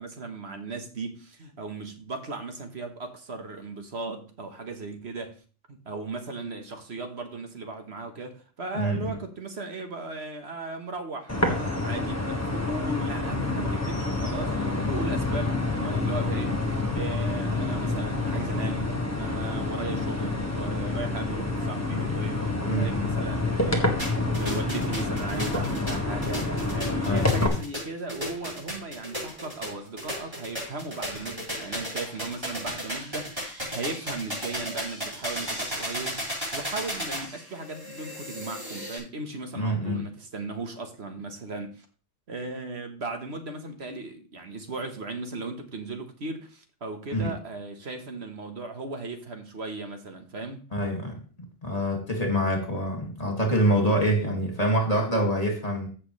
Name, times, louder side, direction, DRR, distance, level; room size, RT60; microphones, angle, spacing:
voice 1, 0.0-5.4 5.7-24.0 24.4-36.3 36.5-41.8 42.3-50.6, right 3 dB, 60° right, 1.5 m, -37 dB
voice 2, 8.7-9.1 22.6-23.1 27.0-27.5 39.5-40.0 47.1-47.3 50.7-51.2 51.6-55.9, right 1 dB, 30° left, 2.4 m, -26 dB
sound 1, 11.3-27.5, left 2 dB, 15° left, 1.5 m, -28 dB
sound 2, 24.0-39.0, equal, 20° right, 5.4 m, -35 dB
15.0 x 6.4 x 3.2 m
omnidirectional pair, 1.2 m